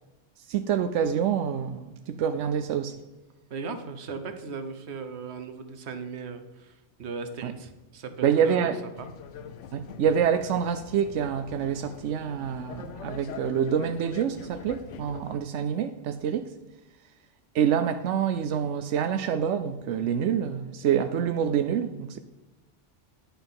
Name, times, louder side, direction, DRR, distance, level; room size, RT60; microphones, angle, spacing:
voice 1, 0.5-2.9 7.4-7.5 8.2-8.8 9.7-16.5 17.5-22.2, right 8 dB, 90° right, 0.9 m, -26 dB
voice 2, 3.5-8.7 9.0-9.1, right 4 dB, 70° right, 1.2 m, -38 dB
sound 1, 8.9-15.4, left 7 dB, 85° left, 1.0 m, -43 dB
10.0 x 5.7 x 5.7 m
omnidirectional pair, 1.2 m